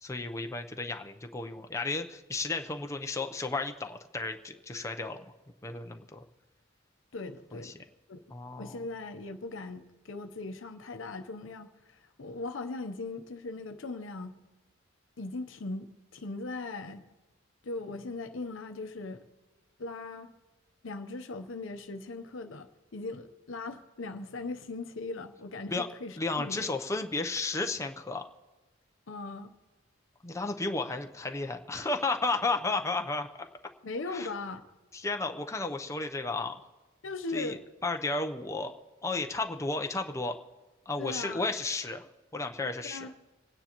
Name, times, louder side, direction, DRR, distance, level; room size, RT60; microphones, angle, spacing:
voice 1, 0.0-5.3 5.6-6.2 7.5-7.7 8.3-8.9 25.7-25.9 26.2-28.3 30.2-33.5 34.1-34.3 34.9-36.6 37.3-38.7 39.0-40.4 40.9-43.1, left 3 dB, 15° left, 4 dB, 0.6 m, -33 dB
voice 2, 7.1-7.7 8.1-8.2 8.6-14.3 15.2-17.0 17.6-19.2 19.8-20.3 20.8-26.6 29.1-29.5 33.8-34.6 37.0-37.6 41.0-41.5 42.9-43.1, left 3 dB, 75° left, 7 dB, 0.7 m, -39 dB
27.5 x 9.5 x 2.9 m, 1.2 s
head